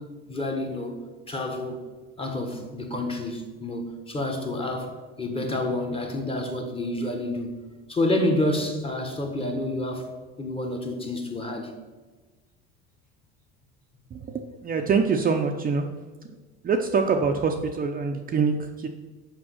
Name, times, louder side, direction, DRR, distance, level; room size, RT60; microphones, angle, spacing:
voice 1, 0.3-1.0 1.3-1.8 2.2-7.6 7.9-10.1 10.4-11.7, left 1 dB, 20° left, 3 dB, 1.3 m, -29 dB
voice 2, 14.1-15.9 16.6-18.9, right 5 dB, 30° right, 4 dB, 0.6 m, -25 dB
6.2 x 5.2 x 6.2 m, 1.3 s
cardioid pair, 110°, 30 cm